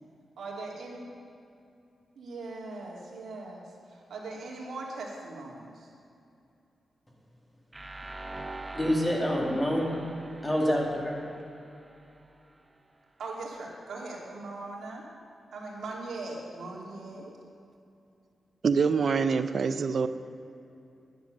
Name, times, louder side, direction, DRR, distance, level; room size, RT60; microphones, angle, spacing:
voice 1, 0.4-1.1 2.2-5.9 13.2-15.0 15.5-17.3, right 3 dB, 85° right, -3 dB, 2.7 m, -40 dB
sound 1, 7.7-12.6, right 2 dB, 15° right, 0.7 m, -44 dB
voice 2, 8.7-10.0 10.4-11.3, equal, 15° left, -2 dB, 2.3 m, -27 dB
voice 3, 18.6-20.1, right 5 dB, 55° right, 12 dB, 0.5 m, -25 dB
10.5 x 10.5 x 6.6 m, 2.6 s
wide cardioid pair, 125°, 0 cm